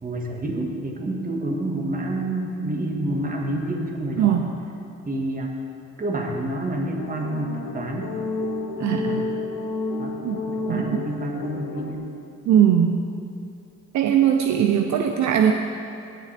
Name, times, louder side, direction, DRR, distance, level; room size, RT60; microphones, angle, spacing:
voice 1, 0.0-4.4 5.0-5.5 6.0-8.1 8.8-9.2 10.0-10.2 10.5-12.0, right 1 dB, 30° right, 0 dB, 1.7 m, -28 dB
voice 2, 4.2-4.5 8.8-9.2 10.2-10.4 10.7-11.0 12.5-13.1 13.9-15.5, right 9 dB, 65° right, 4 dB, 0.6 m, -20 dB
sound 1, 7.0-11.9, left 3 dB, 85° left, 1.2 m, -30 dB
16.5 x 7.7 x 3.4 m, 2.6 s
cardioid pair, 90°, 30 cm